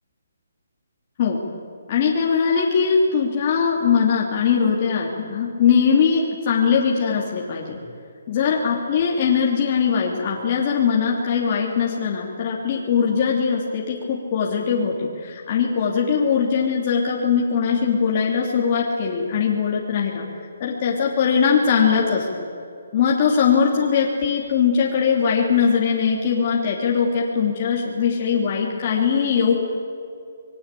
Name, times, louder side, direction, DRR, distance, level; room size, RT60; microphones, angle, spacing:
voice 1, 1.9-7.8 8.3-20.2 20.6-22.5 22.9-29.5, left 6 dB, 30° left, -3 dB, 3.1 m, -21 dB
26.5 x 21.5 x 8.5 m, 2.5 s
hypercardioid pair, 170°, 0 cm